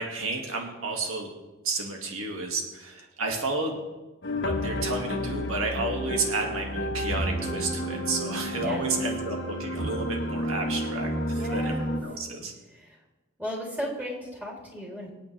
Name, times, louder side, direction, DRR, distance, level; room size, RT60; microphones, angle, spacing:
voice 1, 0.0-1.3 1.6-3.8 4.4-11.7 12.0-12.5, right 3 dB, 80° right, 1 dB, 2.1 m, -31 dB
sound 1, 4.2-12.0, equal, 55° left, 1.6 m, -30 dB
voice 2, 8.5-8.9 11.3-11.9 12.7-13.0 13.4-15.1, equal, 5° right, -3 dB, 3.1 m, -35 dB
25.5 x 8.7 x 3.4 m, 1.2 s
head